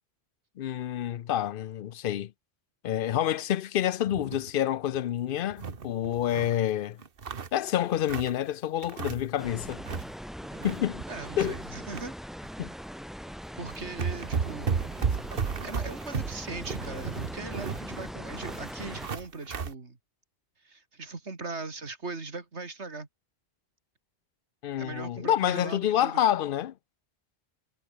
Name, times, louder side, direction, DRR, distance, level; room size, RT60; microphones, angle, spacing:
voice 1, 0.6-2.3 2.8-7.0 7.5-9.8 10.6-11.0 11.4-11.6 12.6-12.7 24.6-26.7, left 11 dB, 60° left, 0.7 m, -28 dB
sound 1, 4.1-4.5 4.9-5.0 5.3-6.6 7.0-8.4 8.8-9.4 9.7-10.1 10.4-12.1 12.4-12.6 13.3-13.4 13.7-19.7, right 6 dB, 55° right, 1.4 m, -34 dB
sound 2, 9.4-19.1, equal, ahead, 1.9 m, -41 dB
voice 2, 11.1-12.2 13.5-14.7 15.3-20.0 20.6-23.1 24.8-26.2, right 3 dB, 80° right, 2.9 m, -40 dB
omnidirectional pair, 1.1 m